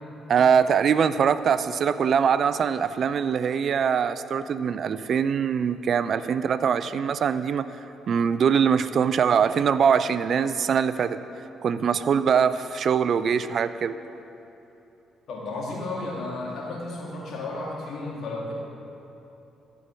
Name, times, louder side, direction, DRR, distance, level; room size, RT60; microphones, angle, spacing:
voice 1, 0.3-7.7 8.1-11.2 11.6-14.0, right 7 dB, 60° right, 14 dB, 0.4 m, -23 dB
voice 2, 15.3-18.5, left 2 dB, 65° left, -2 dB, 2.2 m, -33 dB
14.5 x 5.8 x 6.2 m, 3.0 s
supercardioid pair, 55°, 0 cm